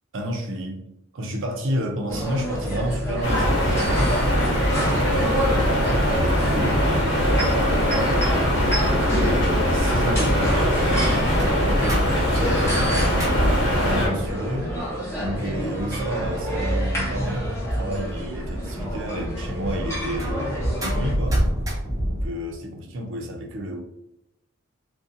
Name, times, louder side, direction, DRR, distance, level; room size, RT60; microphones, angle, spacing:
voice 1, 0.1-4.2 4.9-8.6 9.4-10.8 11.4-14.7 15.2-21.4 22.1-23.8, equal, 65° right, 3 dB, 0.5 m, -31 dB
sound 1, 2.1-21.1, equal, 15° left, 0.8 m, -28 dB
sound 2, 3.2-14.1, equal, 50° left, 1.2 m, -21 dB
sound 3, 11.6-22.3, equal, 15° right, 0.6 m, -31 dB
2.5 x 2.1 x 2.6 m, 0.84 s
head